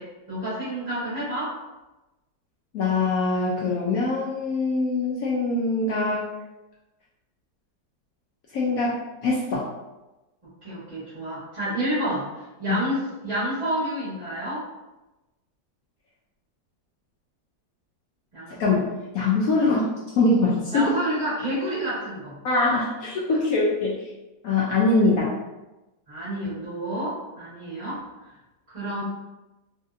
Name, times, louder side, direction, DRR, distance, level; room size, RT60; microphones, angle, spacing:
voice 1, 0.0-1.5 10.6-12.3 12.6-14.6 18.3-18.7 20.7-22.4 26.1-28.3 28.7-29.0, right 1 dB, 20° right, -13 dB, 1.1 m, -29 dB
voice 2, 2.7-6.2 8.5-9.7 12.7-12.8 18.6-18.9 19.1-19.8 20.2-20.9 22.4-23.9 24.4-25.4, left 3 dB, 75° left, -5 dB, 0.8 m, -23 dB
3.1 x 2.7 x 2.5 m, 1.0 s
omnidirectional pair, 2.0 m